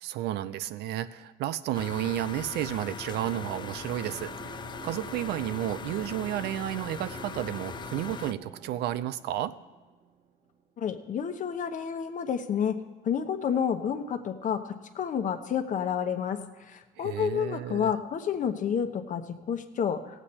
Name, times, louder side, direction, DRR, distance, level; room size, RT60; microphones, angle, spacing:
voice 1, 0.0-4.3 4.8-9.5 17.0-17.9, right 13 dB, 75° right, 14 dB, 0.5 m, -32 dB
Computer Humming, 1.7-8.3, left 6 dB, 25° left, 0.3 m, -40 dB
sound 1, 2.9-10.6, right 6 dB, 45° right, 1.3 m, -47 dB
voice 2, 10.8-12.8 13.0-20.0, left 8 dB, 50° left, 8 dB, 1.0 m, -30 dB
17.0 x 8.2 x 4.3 m, 1.2 s
cardioid pair, 110°, 17 cm